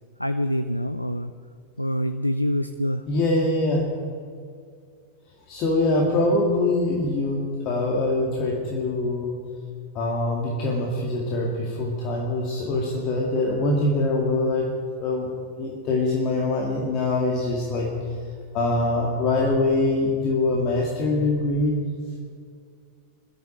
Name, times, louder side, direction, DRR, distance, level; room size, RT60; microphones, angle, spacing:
voice 1, 0.2-1.3 1.8-3.0, equal, 90° left, 10 dB, 0.5 m, -25 dB
voice 2, 3.1-3.8 5.5-9.4 9.9-14.7 15.0-15.3 15.6-17.9 18.5-21.8, left 2 dB, 40° left, -2 dB, 2.4 m, -23 dB
21.5 x 13.0 x 4.5 m, 2.2 s
figure-of-eight pair, 90°, 0 cm